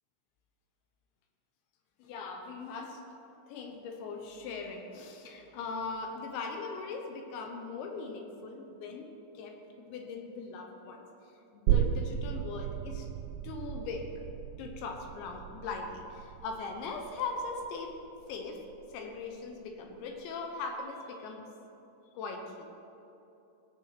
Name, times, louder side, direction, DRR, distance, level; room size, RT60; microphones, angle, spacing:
voice 1, 2.0-3.0 3.5-9.1 9.3-11.1 11.5-13.1 13.4-14.1 14.6-18.0 18.3-21.5 22.1-22.7, left 4 dB, 75° left, 3 dB, 3.1 m, -40 dB
sound 1, 11.7-19.0 19.3-19.4, right 10 dB, 85° right, 2.7 m, -34 dB
17.5 x 7.6 x 5.9 m, 2.9 s
omnidirectional pair, 5.8 m